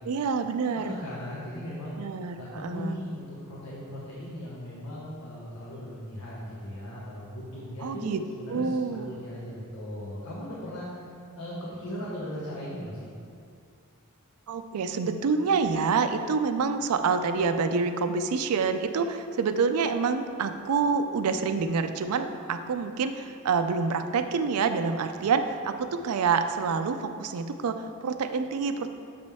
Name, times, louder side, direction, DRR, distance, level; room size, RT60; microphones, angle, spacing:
voice 1, 0.1-1.0 2.0-3.0 7.8-8.2 8.5-9.1 14.5-28.9, right 5 dB, 85° right, 9 dB, 0.4 m, -27 dB
voice 2, 0.7-2.0 2.3-10.9 11.3-13.1 25.1-25.3, equal, 90° left, -7 dB, 1.1 m, -38 dB
7.2 x 5.2 x 3.5 m, 2.3 s
head